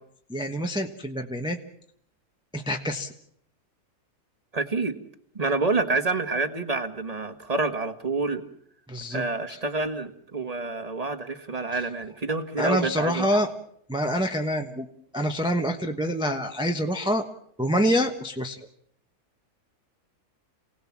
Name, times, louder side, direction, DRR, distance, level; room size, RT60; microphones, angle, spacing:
voice 1, 0.3-1.6 2.5-3.1 8.9-9.2 9.5-9.6 12.6-13.5 13.9-14.9 15.1-17.2 17.6-18.6, equal, 5° right, 4 dB, 1.0 m, -26 dB
voice 2, 4.5-5.0 5.3-8.4 9.1-13.5, right 3 dB, 25° right, 8 dB, 1.6 m, -28 dB
28.0 x 18.0 x 7.4 m, 0.69 s
omnidirectional pair, 1.7 m